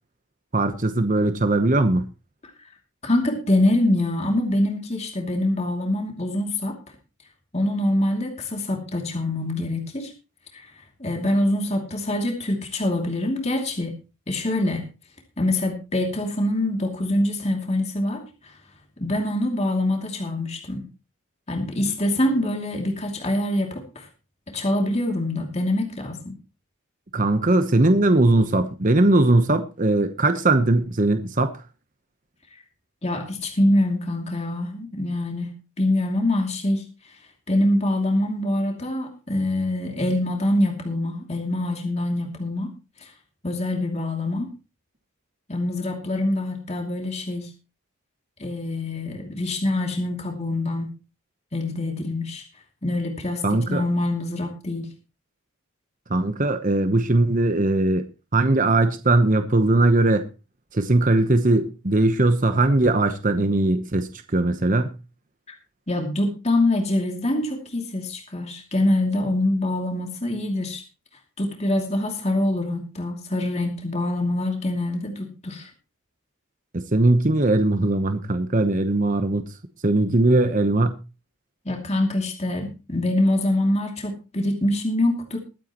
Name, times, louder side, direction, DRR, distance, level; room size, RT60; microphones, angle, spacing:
voice 1, 0.5-2.1 27.1-31.5 53.4-53.8 56.1-58.1 58.3-60.2 60.7-64.9 76.7-79.4 79.8-81.0, right 2 dB, 35° right, 1.0 m, -20 dB
voice 2, 3.0-6.8 7.5-10.1 10.5-10.7 11.0-13.9 14.3-14.8 15.4-18.5 19.0-20.8 21.5-24.1 24.5-26.3 32.5-32.6 33.0-36.8 37.5-42.7 43.0-43.1 43.4-44.5 45.5-47.5 48.4-50.9 51.5-52.4 52.8-54.9 65.5-65.6 65.9-70.8 71.4-75.7 81.6-85.4, left 1 dB, 30° left, 2.6 m, -24 dB
22.0 x 9.2 x 3.0 m
head